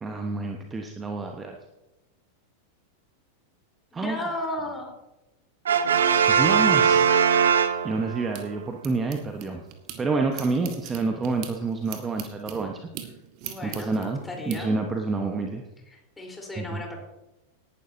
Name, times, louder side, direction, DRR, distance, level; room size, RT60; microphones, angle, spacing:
voice 1, 0.0-1.6 3.9-4.2 6.3-7.1 7.8-9.6 10.0-12.8 13.6-14.2 14.5-15.6 16.6-16.8, right 3 dB, 15° right, 3 dB, 1.2 m, -28 dB
voice 2, 3.9-4.9 13.4-14.8 15.9-17.0, left 1 dB, 10° left, 0 dB, 4.0 m, -35 dB
Brass instrument, 5.7-8.3, right 7 dB, 65° right, 0.9 m, -20 dB
sound 1, 7.6-10.0 10.3-14.6, right 10 dB, 40° right, 1.7 m, -41 dB
18.5 x 11.5 x 2.8 m, 0.96 s
figure-of-eight pair, 90°, 0 cm